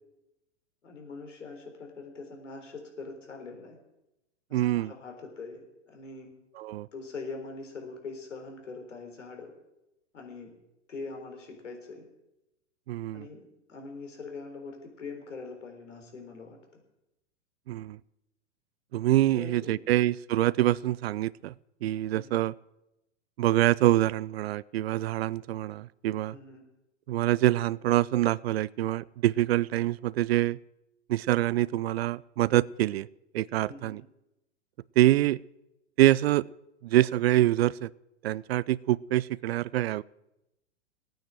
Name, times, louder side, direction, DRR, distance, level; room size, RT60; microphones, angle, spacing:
voice 1, 0.8-3.8 4.5-5.6 5.9-6.3 6.9-9.5 10.1-10.5 10.9-12.1 13.1-16.8 19.3-19.9 22.1-22.4 26.3-26.6 33.7-34.0, left 4 dB, 80° left, 2 dB, 3.9 m, -43 dB
voice 2, 4.5-4.9 6.6-6.9 12.9-13.3 17.7-18.0 18.9-21.5 21.8-22.5 23.4-26.4 27.1-30.6 31.1-33.1 33.3-34.0 35.0-35.4 36.0-36.5 36.8-37.9 38.2-40.0, right 15 dB, 55° right, 21 dB, 0.5 m, -25 dB
17.5 x 9.2 x 7.5 m, 0.92 s
hypercardioid pair, 110°, 36 cm